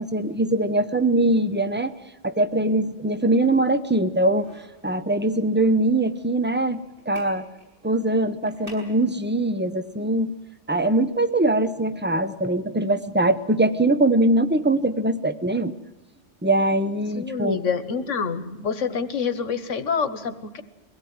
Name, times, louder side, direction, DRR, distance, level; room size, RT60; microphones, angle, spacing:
voice 1, 0.0-1.9 2.2-4.5 4.8-6.8 7.1-7.4 7.8-10.3 10.7-15.7 16.4-17.6, right 2 dB, 10° right, 12 dB, 0.6 m, -22 dB
sound 1, 4.3-11.1, right 1 dB, 50° right, 6.4 m, -52 dB
voice 2, 17.1-20.6, left 5 dB, 85° left, 11 dB, 1.6 m, -27 dB
23.0 x 16.5 x 9.5 m, 1.0 s
omnidirectional pair, 1.2 m